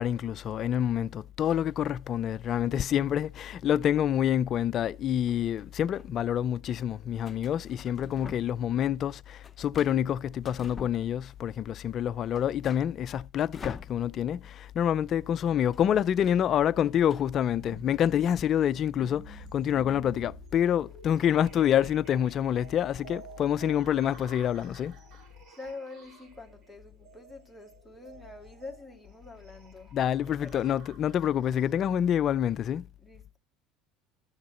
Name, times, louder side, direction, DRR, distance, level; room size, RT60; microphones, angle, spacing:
voice 1, 0.0-25.0 29.9-32.8, left 10 dB, 40° left, 0.5 m, -27 dB
sound 1, 5.3-6.1 7.2-8.7 9.0-11.5 11.9-12.0 12.2-14.4 14.7-14.9 15.1-17.2, left 5 dB, 20° left, 0.9 m, -47 dB
sound 2, 17.5-32.1, right 4 dB, 60° right, 5.2 m, -51 dB
voice 2, 25.5-29.9 30.3-30.8 33.0-33.4, left 3 dB, 5° left, 2.1 m, -46 dB
12.5 x 6.8 x 4.3 m
supercardioid pair, 125°, 0 cm